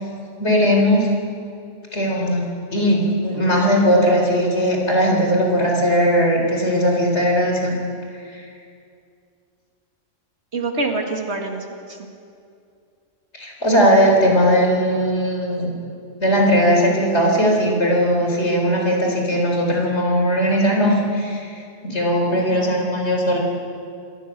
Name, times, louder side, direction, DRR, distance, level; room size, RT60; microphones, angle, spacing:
voice 1, 0.4-1.1 1.9-7.8 8.3-8.4 13.3-15.8 16.2-23.4, equal, 60° left, 0 dB, 4.8 m, -18 dB
voice 2, 10.5-12.0 22.3-22.8, right 3 dB, 60° right, 2 dB, 2.5 m, -27 dB
28.0 x 18.0 x 6.8 m, 2.4 s
omnidirectional pair, 1.3 m